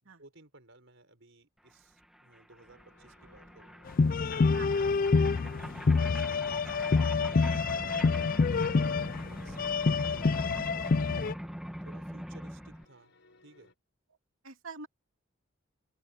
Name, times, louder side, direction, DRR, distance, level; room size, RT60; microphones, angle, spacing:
voice 1, 0.0-3.8 4.7-7.2 7.7-7.9 8.4-11.6 11.8-13.1 13.4-13.7, right 2 dB, 65° right, 6.0 m, -58 dB
sound 1, 1.7-1.8 2.0-12.8, equal, ahead, 1.5 m, -43 dB
sound 2, 2.6-13.8, left 2 dB, 65° left, 5.8 m, -63 dB
sound 3, 3.9-11.3, left 4 dB, 45° left, 0.4 m, -27 dB
voice 2, 4.5-4.9 14.4-14.9, right 4 dB, 90° right, 3.0 m, -45 dB
open air
head